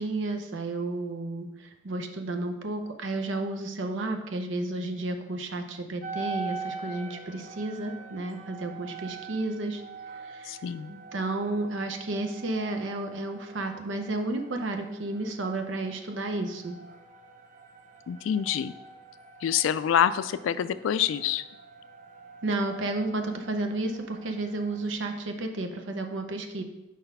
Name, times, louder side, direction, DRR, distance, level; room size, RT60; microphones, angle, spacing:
voice 1, 0.0-9.8 10.2-10.6 10.9-16.8 22.4-26.6, right 2 dB, 80° right, 5 dB, 0.7 m, -32 dB
Civil Defense Tornado Sirens and Dogs Howl, 6.0-24.9, right 5 dB, 40° right, 0.4 m, -44 dB
voice 2, 10.4-10.9 18.1-18.7 19.4-21.4, left 9 dB, 85° left, 15 dB, 0.3 m, -26 dB
4.9 x 4.0 x 5.4 m, 0.97 s
head